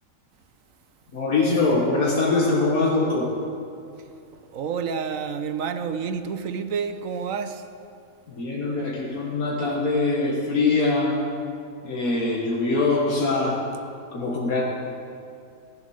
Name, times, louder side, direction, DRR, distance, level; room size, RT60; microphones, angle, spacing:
voice 1, 1.1-3.3 8.3-11.2 11.8-13.6 14.1-14.6, left 3 dB, 80° left, -3 dB, 2.0 m, -23 dB
voice 2, 4.0-7.7, right 6 dB, 70° right, 9 dB, 1.2 m, -30 dB
15.0 x 10.5 x 6.4 m, 2.5 s
omnidirectional pair, 1.5 m